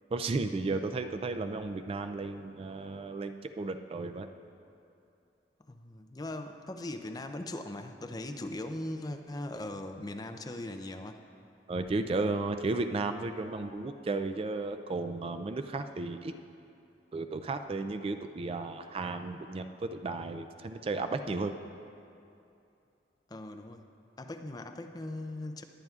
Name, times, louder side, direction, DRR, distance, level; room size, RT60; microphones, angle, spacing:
voice 1, 0.1-4.3 11.7-16.3 17.1-21.5, right 3 dB, 35° right, 8 dB, 0.3 m, -34 dB
voice 2, 5.6-11.2 23.3-23.9 24.2-25.6, left 1 dB, 20° left, 6 dB, 0.5 m, -39 dB
21.5 x 9.1 x 2.4 m, 2.6 s
head